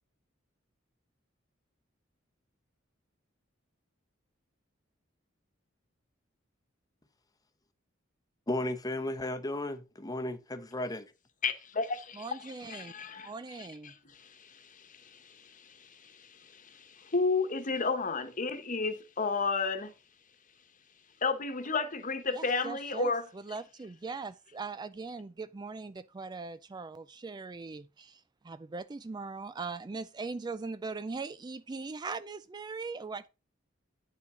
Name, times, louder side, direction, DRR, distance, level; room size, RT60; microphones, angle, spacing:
voice 1, 8.5-11.1, left 1 dB, 20° left, 0.9 m, -34 dB
voice 2, 11.4-12.3 12.7-13.3 13.6-19.9 21.2-23.2, left 4 dB, 40° left, 1.2 m, -33 dB
voice 3, 12.1-12.9 13.2-13.9 22.3-33.3, right 4 dB, 20° right, 0.3 m, -40 dB
9.4 x 5.6 x 5.0 m
head